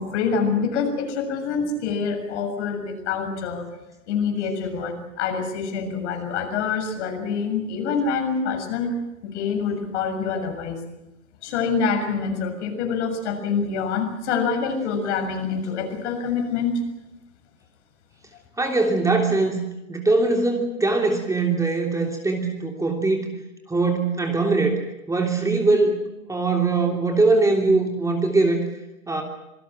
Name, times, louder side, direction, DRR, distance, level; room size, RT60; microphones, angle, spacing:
voice 1, 0.0-3.7 4.1-8.9 9.2-10.8 11.4-16.7, left 5 dB, 55° left, 5 dB, 7.0 m, -26 dB
voice 2, 18.6-19.6 19.9-23.3 23.7-26.0 26.3-28.6 29.1-29.2, right 3 dB, 10° right, 2 dB, 3.2 m, -21 dB
27.0 x 19.0 x 7.6 m, 0.91 s
hypercardioid pair, 115°, 41 cm